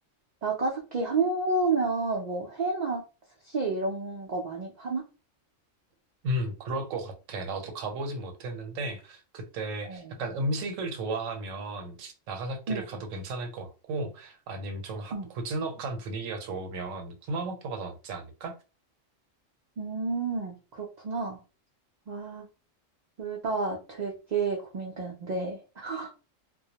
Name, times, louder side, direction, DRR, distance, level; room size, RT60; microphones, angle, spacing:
voice 1, 0.4-3.0 3.5-5.0 9.8-10.1 12.7-13.0 15.1-15.3 19.8-21.4 22.1-22.5 23.2-26.1, right 3 dB, 70° right, 0.4 m, -30 dB
voice 2, 6.2-18.5, right 2 dB, 85° right, 1.0 m, -34 dB
2.2 x 2.0 x 2.7 m
omnidirectional pair, 1.3 m